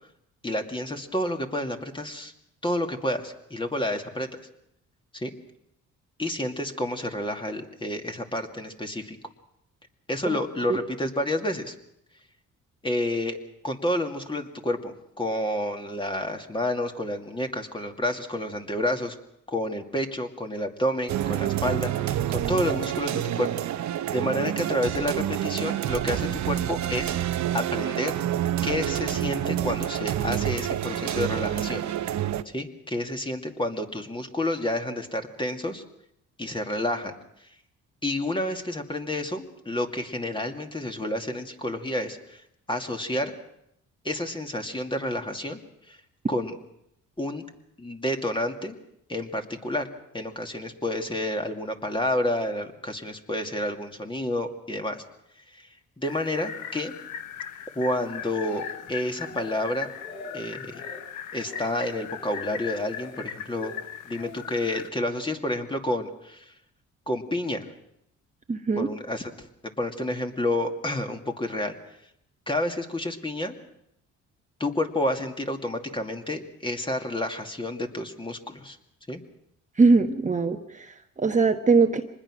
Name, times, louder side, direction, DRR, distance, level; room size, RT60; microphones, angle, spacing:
voice 1, 0.4-2.3 2.6-4.5 5.1-5.3 6.2-9.2 10.1-11.7 12.8-13.4 13.6-19.1 19.5-27.2 27.5-28.2 28.6-31.8 32.5-35.8 36.4-37.2 38.0-42.4 42.7-43.3 44.0-45.6 45.9-46.0 46.3-46.5 47.2-47.5 47.8-48.8 49.1-49.9 50.1-55.0 55.5-56.9 57.7-59.9 60.3-60.8 61.3-63.7 64.0-66.5 67.1-67.7 68.8-69.5 69.8-71.8 72.5-73.6 74.6-78.8 79.1-79.2, left 1 dB, 15° left, 4 dB, 2.4 m, -29 dB
sound 1, 21.1-32.4, right 11 dB, 65° right, 0.9 m, -28 dB
sound 2, 56.0-64.9, left 9 dB, 90° left, 1.3 m, -39 dB
Speech, 57.9-58.9 59.2-59.6 60.0-60.3 60.7-61.0 61.4-61.7 62.1-62.4 62.8-63.2 63.6-64.4 65.1-65.4, left 3 dB, 60° left, 6.6 m, -43 dB
voice 2, 68.5-68.9 79.8-80.9 81.2-82.0, right 4 dB, 25° right, 5 dB, 1.2 m, -21 dB
25.0 x 20.5 x 6.2 m, 0.78 s
cardioid pair, 90°, 30 cm